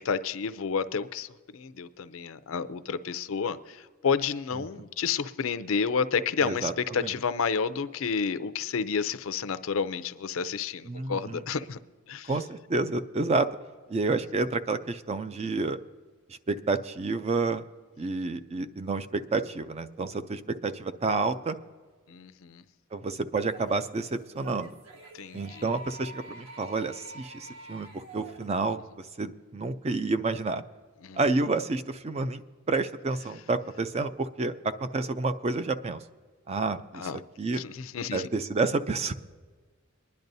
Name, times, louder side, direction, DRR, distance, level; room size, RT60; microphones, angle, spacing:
voice 1, 0.0-11.8 12.1-12.3 22.1-22.6 25.1-25.6 31.0-31.2 36.9-37.2 37.5-38.3, left 6 dB, 80° left, 13 dB, 0.5 m, -30 dB
voice 2, 6.4-6.7 7.0-7.1 10.9-11.4 12.3-13.5 13.9-15.8 16.3-17.6 18.0-21.6 22.9-24.7 25.3-30.6 31.2-36.0 36.5-37.6 38.1-39.1, right 3 dB, 30° right, 11 dB, 0.4 m, -29 dB
sound 1, 23.4-28.5, right 2 dB, 75° right, 1.3 m, -47 dB
23.5 x 10.5 x 2.7 m, 1.5 s
head